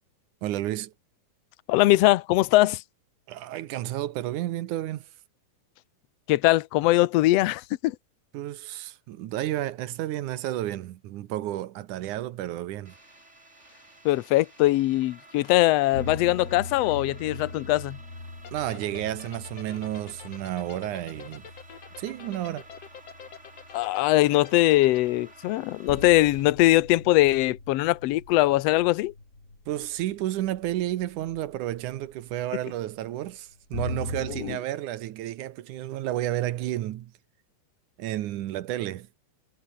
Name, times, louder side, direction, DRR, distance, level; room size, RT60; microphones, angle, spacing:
voice 1, 0.4-0.9 3.3-5.1 8.3-12.9 18.5-21.4 22.0-22.7 29.7-37.1 38.0-39.1, right 14 dB, 75° right, 2.4 m, -31 dB
voice 2, 1.7-2.8 6.3-7.9 14.0-18.0 23.7-29.1 34.4-34.6, left 17 dB, 75° left, 1.5 m, -21 dB
sound 1, 12.8-26.5, right 2 dB, 20° right, 4.8 m, -52 dB
sound 2, 15.9-34.6, left 2 dB, 25° left, 6.0 m, -42 dB
sound 3, 18.4-25.1, left 8 dB, 50° left, 3.0 m, -45 dB
omnidirectional pair, 3.8 m